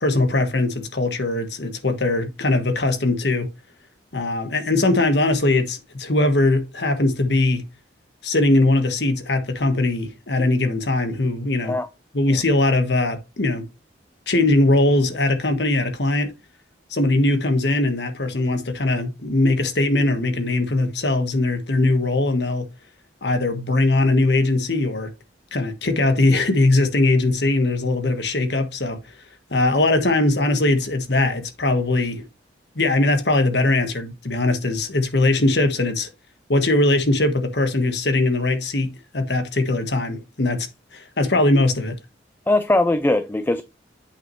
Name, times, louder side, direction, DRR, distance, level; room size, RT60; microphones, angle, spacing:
voice 1, 0.0-3.5 4.1-7.6 8.2-11.7 12.1-13.6 14.3-16.3 16.9-22.7 23.2-25.1 25.5-29.0 29.5-32.2 32.7-36.1 36.5-38.9 39.1-40.7 40.9-42.0, left 2 dB, 70° left, 1.4 m, -20 dB
voice 2, 42.5-43.6, left 2 dB, 10° left, 0.3 m, -20 dB
8.3 x 6.0 x 3.1 m
head